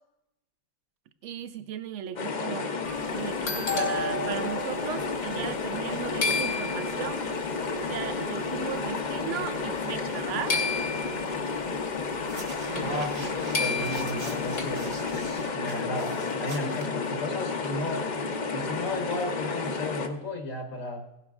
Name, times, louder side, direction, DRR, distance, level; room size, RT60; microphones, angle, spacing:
voice 1, 1.2-2.7 3.1-7.3 7.9-10.6, right 10 dB, 70° right, 12 dB, 0.9 m, -36 dB
sound 1, 2.2-20.1, left 4 dB, 45° left, 0.6 m, -31 dB
sound 2, 2.8-6.0 6.2-7.1 8.0-8.1 8.7-9.1 10.5-11.3 12.8-12.9 13.1-13.2 13.5-14.7, left 3 dB, 90° left, 2.1 m, -32 dB
sound 3, 12.1-17.5, right 2 dB, 50° right, 1.6 m, -43 dB
voice 2, 12.7-16.1 16.4-18.0 18.4-21.0, left 2 dB, 70° left, 3 dB, 1.4 m, -34 dB
16.5 x 11.5 x 2.4 m, 0.95 s
omnidirectional pair, 1.4 m